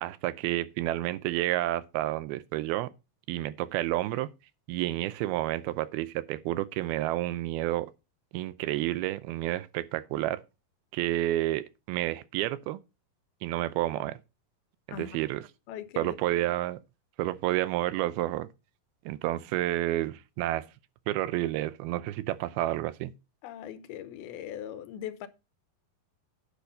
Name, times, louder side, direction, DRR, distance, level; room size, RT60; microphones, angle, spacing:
voice 1, 0.0-2.9 3.3-4.3 4.7-7.9 8.3-10.4 10.9-12.8 13.4-14.2 14.9-15.4 16.0-16.8 17.2-18.5 19.1-20.7 21.1-23.1, right 15 dB, 85° right, 2.6 m, -30 dB
voice 2, 15.7-16.2 23.4-25.3, left 10 dB, 90° left, 2.7 m, -40 dB
10.0 x 5.8 x 5.3 m
omnidirectional pair, 4.4 m